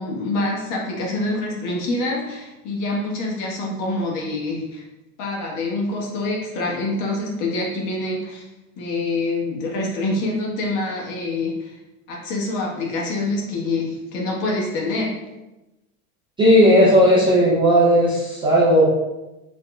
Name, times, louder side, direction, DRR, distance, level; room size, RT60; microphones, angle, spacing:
voice 1, 0.0-4.8 5.2-8.4 8.8-11.8 12.1-15.1, left 2 dB, 40° left, -2 dB, 1.2 m, -26 dB
voice 2, 16.4-18.8, equal, 10° right, -7 dB, 0.4 m, -15 dB
4.9 x 3.0 x 2.2 m, 1.0 s
hypercardioid pair, 115°, 45 cm